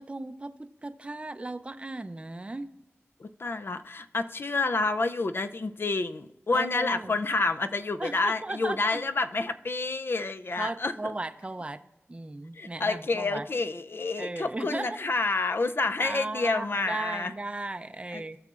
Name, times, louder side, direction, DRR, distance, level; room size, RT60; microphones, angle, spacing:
voice 1, 0.0-2.7 6.5-7.1 8.0-9.0 10.6-11.8 12.1-13.5 14.2-15.1 16.0-18.4, right 2 dB, 25° right, 9 dB, 0.5 m, -36 dB
voice 2, 3.2-10.9 12.6-17.3 18.1-18.4, left 3 dB, 55° left, 10 dB, 0.5 m, -29 dB
17.5 x 6.7 x 2.5 m, 0.94 s
wide cardioid pair, 75°, 5 cm